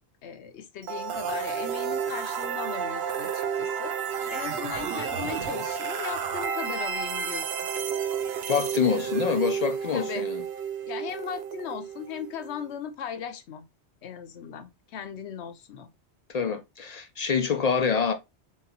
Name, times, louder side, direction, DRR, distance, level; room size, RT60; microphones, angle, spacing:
voice 1, 0.2-4.0 4.3-7.7 9.9-10.3 10.8-13.7 14.0-15.9, left 8 dB, 75° left, 0.9 m, -38 dB
sound 1, 0.8-12.7, right 7 dB, 65° right, 0.8 m, -31 dB
voice 2, 8.5-10.4 16.3-18.1, left 6 dB, 55° left, 0.4 m, -26 dB
3.9 x 3.4 x 2.7 m
omnidirectional pair, 1.2 m